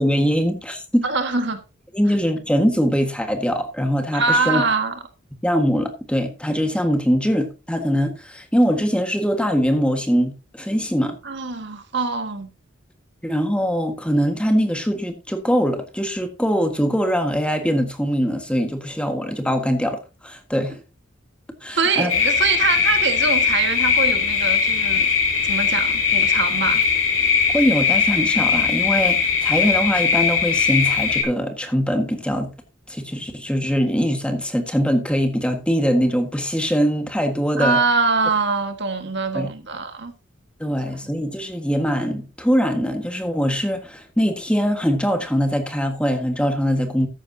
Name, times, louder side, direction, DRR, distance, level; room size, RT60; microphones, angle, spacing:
voice 1, 0.0-1.0 1.9-4.6 5.4-11.2 13.2-20.8 21.6-22.1 27.5-32.5 32.9-37.8 39.3-39.5 40.6-47.1, equal, 5° left, 1.5 m, -22 dB
voice 2, 1.0-1.6 4.1-5.0 11.2-12.5 21.7-25.1 25.4-26.8 37.6-40.1, right 4 dB, 60° right, 1.6 m, -23 dB
sound 1, 22.1-31.2, left 6 dB, 85° left, 4.3 m, -20 dB
13.5 x 10.0 x 2.7 m
head